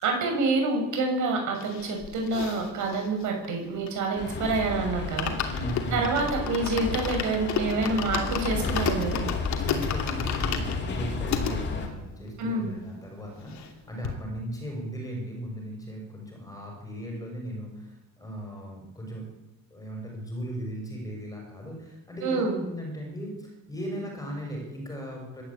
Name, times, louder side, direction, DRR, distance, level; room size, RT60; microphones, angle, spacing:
voice 1, 0.0-5.3 5.9-9.2 12.4-12.7 22.2-22.5, right 3 dB, 60° right, 3 dB, 6.8 m, -27 dB
sound 1, 1.5-4.3 4.7-4.8 5.0-11.5 12.1-12.2 12.4-12.5 12.8-13.8 14.0-14.2, left 7 dB, 55° left, 2.9 m, -33 dB
sound 2, 4.1-11.9, left 4 dB, 30° left, 3.3 m, -32 dB
voice 2, 5.4-6.3 9.6-19.3 19.7-25.4, equal, 10° left, 1 dB, 6.1 m, -37 dB
26.0 x 12.5 x 8.7 m, 0.98 s
cardioid pair, 180°, 34 cm